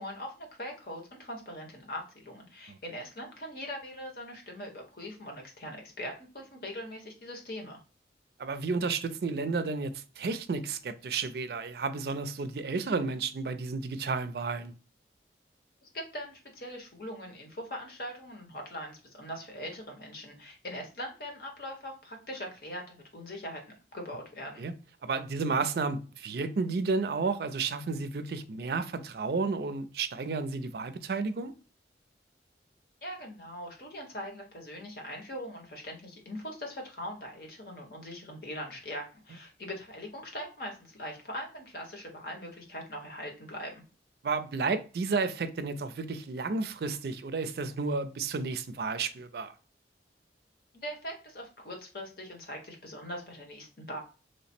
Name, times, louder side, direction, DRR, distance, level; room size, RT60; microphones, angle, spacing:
voice 1, 0.0-7.8 15.8-23.6 23.9-24.6 33.0-43.8 50.7-54.0, equal, 55° left, 1.0 m, -41 dB
voice 2, 8.4-14.7 24.6-24.7 25.0-31.5 44.2-49.5, right 4 dB, 60° right, 0.4 m, -32 dB
3.1 x 2.0 x 4.2 m
head